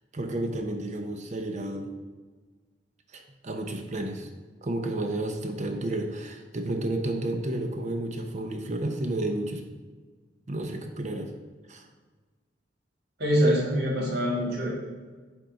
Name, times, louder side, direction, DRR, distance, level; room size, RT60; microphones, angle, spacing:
voice 1, 0.1-2.0 3.1-4.3 4.6-9.6 10.5-11.3 11.7-11.9, right 1 dB, 40° right, 5 dB, 0.7 m, -31 dB
voice 2, 13.2-14.7, equal, 60° right, -5 dB, 1.7 m, -24 dB
7.3 x 3.8 x 3.9 m, 1.4 s
head